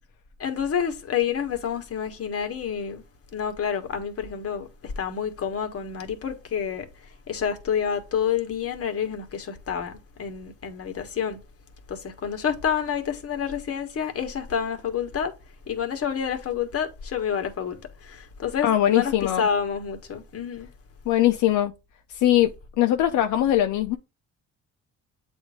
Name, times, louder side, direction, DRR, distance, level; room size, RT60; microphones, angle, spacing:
voice 1, 0.4-3.0 3.3-6.8 7.3-11.4 11.9-15.3 15.7-20.7, left 7 dB, 50° left, 1.5 m, -28 dB
voice 2, 18.6-19.5 21.1-21.7 22.1-22.5 22.8-24.0, left 12 dB, 80° left, 0.6 m, -21 dB
7.9 x 2.7 x 4.9 m
cardioid pair, 90°, 30 cm